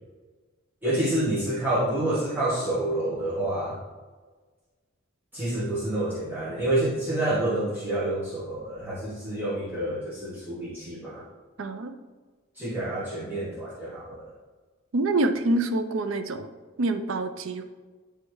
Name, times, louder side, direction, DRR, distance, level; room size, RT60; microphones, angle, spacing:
voice 1, 0.8-3.8 5.3-11.2 12.5-14.3, right 1 dB, 10° right, -10 dB, 1.1 m, -28 dB
voice 2, 11.6-11.9 14.9-16.5 16.8-17.6, right 2 dB, 75° right, 8 dB, 0.5 m, -26 dB
9.7 x 3.4 x 3.1 m, 1.4 s
head